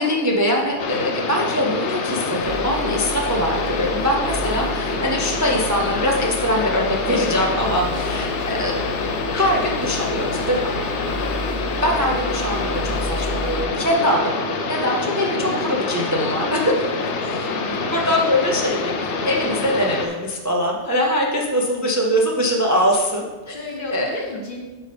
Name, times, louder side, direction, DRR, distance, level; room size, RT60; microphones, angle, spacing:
voice 1, 0.0-8.7 9.3-10.7 11.8-16.7 17.2-17.5 17.9-23.5 23.9-24.1, equal, 20° right, -1 dB, 0.5 m, -22 dB
sound 1, 0.8-20.1, left 3 dB, 85° left, 1.1 m, -26 dB
sound 2, 2.4-13.6, equal, 75° right, 1.5 m, -33 dB
voice 2, 8.2-8.7 11.0-11.3 15.2-15.7 17.0-18.0 23.5-24.6, left 2 dB, 50° left, 0 dB, 1.2 m, -33 dB
8.1 x 5.3 x 3.4 m, 1.2 s
omnidirectional pair, 1.2 m